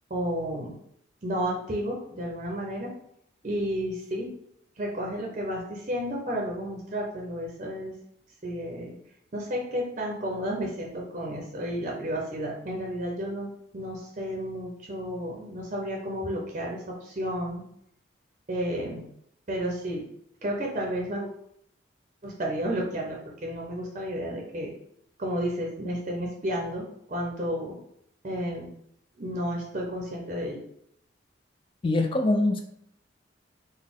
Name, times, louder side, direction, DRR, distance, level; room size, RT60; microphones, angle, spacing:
voice 1, 0.1-0.8 1.2-2.9 3.4-4.3 4.8-7.9 8.4-8.9 9.3-17.6 18.5-19.0 19.5-20.0 20.4-21.3 22.2-24.7 25.2-27.8 28.2-28.7 29.2-30.6, equal, 40° right, -1 dB, 0.6 m, -32 dB
voice 2, 31.8-32.6, left 2 dB, 25° left, 5 dB, 0.3 m, -23 dB
4.0 x 2.1 x 3.5 m, 0.71 s
head